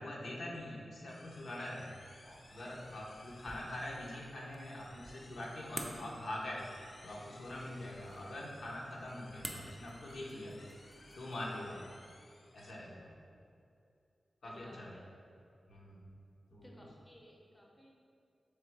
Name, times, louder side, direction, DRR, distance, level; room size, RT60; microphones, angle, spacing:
voice 1, 0.0-2.0 2.2-6.6 7.0-10.5 11.1-11.8 12.5-13.1 14.4-14.9 15.7-16.0 16.5-16.7, left 1 dB, 80° left, -4 dB, 0.7 m, -44 dB
sound 1, 1.1-12.7, left 2 dB, 45° left, 0.3 m, -60 dB
sound 2, 2.2-11.4, right 1 dB, 25° right, 0.4 m, -51 dB
voice 2, 14.4-15.1 16.6-17.9, equal, 10° left, -2 dB, 0.7 m, -58 dB
3.4 x 3.2 x 4.6 m, 2.4 s
wide cardioid pair, 85°, 0 cm